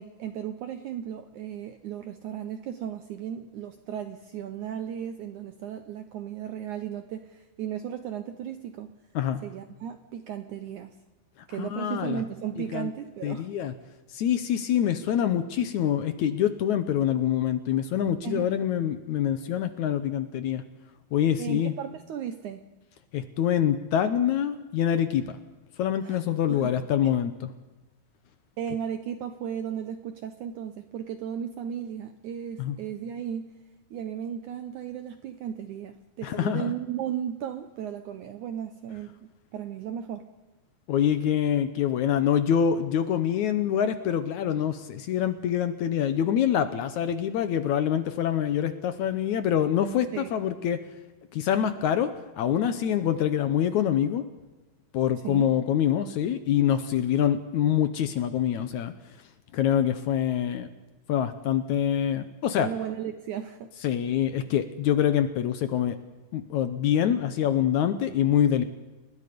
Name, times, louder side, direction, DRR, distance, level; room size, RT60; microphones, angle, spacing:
voice 1, 0.0-8.9 9.4-10.9 11.5-13.5 18.2-18.5 21.4-22.6 26.0-26.2 26.5-26.8 28.6-33.5 33.9-40.3 50.1-50.3 55.2-55.4 62.6-63.7, right 9 dB, 75° right, 8 dB, 1.8 m, -35 dB
voice 2, 11.6-12.2 12.7-12.9 13.2-13.7 14.1-20.6 21.1-21.7 23.1-25.4 25.8-27.5 32.6-32.8 36.2-36.7 40.9-50.8 51.3-54.2 54.9-58.9 59.5-60.7 61.1-62.7 63.8-66.0 66.3-68.6, left 9 dB, 75° left, 10 dB, 1.8 m, -25 dB
30.0 x 20.0 x 5.2 m, 1.1 s
omnidirectional pair, 4.5 m